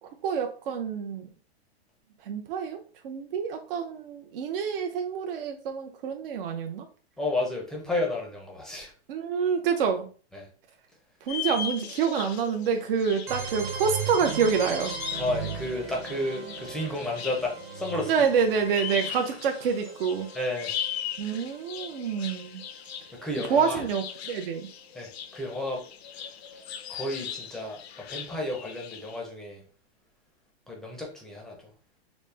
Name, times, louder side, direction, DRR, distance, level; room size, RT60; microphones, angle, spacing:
voice 1, 0.0-1.3 2.2-6.9 9.1-10.1 11.2-14.9 18.1-20.3 21.2-22.6 23.5-24.7, right 6 dB, 60° right, 0.6 m, -27 dB
voice 2, 7.2-8.9 10.3-10.5 15.2-18.1 20.3-20.8 23.2-23.8 24.9-25.8 26.1-26.6 26.9-29.6 30.7-31.6, left 2 dB, ahead, 0.6 m, -32 dB
sound 1, 11.3-29.2, left 9 dB, 75° left, 0.6 m, -39 dB
sound 2, 13.3-23.0, right 6 dB, 30° right, 0.8 m, -38 dB
4.1 x 2.0 x 3.3 m
hypercardioid pair, 145°, 32 cm